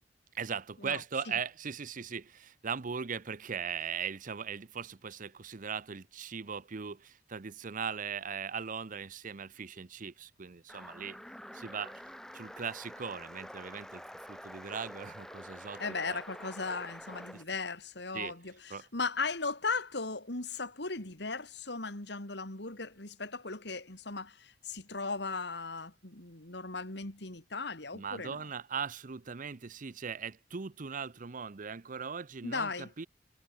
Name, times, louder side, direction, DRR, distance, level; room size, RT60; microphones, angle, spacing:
voice 1, 0.3-11.2 11.5-12.0 12.3-14.0 14.3-16.2 17.3-17.4 18.1-18.4 18.7-18.9 27.9-33.1, right 6 dB, 45° right, 0.7 m, -39 dB
sound 1, 10.7-17.4, equal, 5° left, 5.7 m, -47 dB
voice 2, 15.8-28.5 32.4-32.9, left 4 dB, 65° left, 3.6 m, -37 dB
head